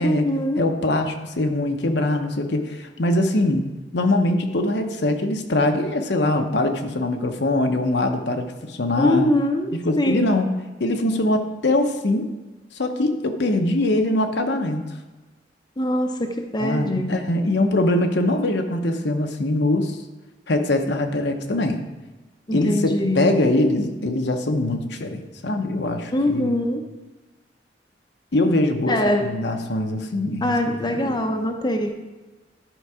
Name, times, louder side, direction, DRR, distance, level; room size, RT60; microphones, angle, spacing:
voice 1, 0.0-0.6 9.0-10.3 15.8-17.1 22.5-23.2 26.1-26.8 28.9-29.2 30.4-32.0, left 1 dB, 25° left, 3 dB, 0.7 m, -23 dB
voice 2, 0.6-3.7 3.9-9.3 9.7-10.5 10.8-12.3 12.7-14.8 16.6-20.0 20.5-21.8 22.5-26.5 28.3-31.2, left 1 dB, 65° left, 5 dB, 0.8 m, -22 dB
11.0 x 4.7 x 4.8 m, 1.2 s
head